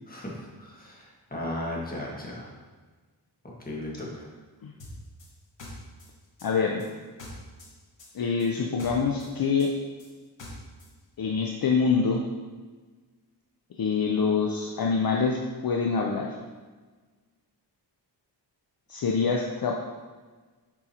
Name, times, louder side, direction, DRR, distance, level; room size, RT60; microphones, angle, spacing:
voice 1, 0.1-2.5 3.4-4.3, left 1 dB, 20° left, -4 dB, 1.7 m, -36 dB
sound 1, 4.8-7.7 8.0-10.9, left 1 dB, 90° left, 1.7 m, -44 dB
voice 2, 6.4-6.8 8.1-9.7 11.2-12.2 13.8-16.4 18.9-19.8, left 5 dB, 55° left, 0 dB, 0.6 m, -25 dB
7.1 x 5.3 x 2.9 m, 1.4 s
wide cardioid pair, 85°, 42 cm